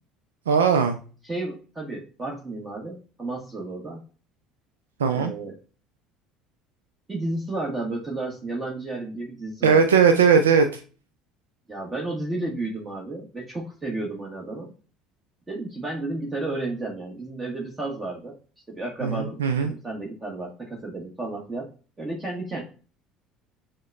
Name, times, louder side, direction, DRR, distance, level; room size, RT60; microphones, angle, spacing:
voice 1, 0.5-1.0 5.0-5.3 9.6-10.8 19.0-19.7, right 6 dB, 85° right, 7 dB, 0.3 m, -19 dB
voice 2, 1.2-4.1 5.1-5.5 7.1-10.0 11.7-14.7 15.5-18.4 18.7-21.7 22.0-22.6, right 2 dB, 20° right, -2 dB, 1.2 m, -32 dB
6.1 x 2.1 x 2.4 m, 0.37 s
hypercardioid pair, 65°, 0 cm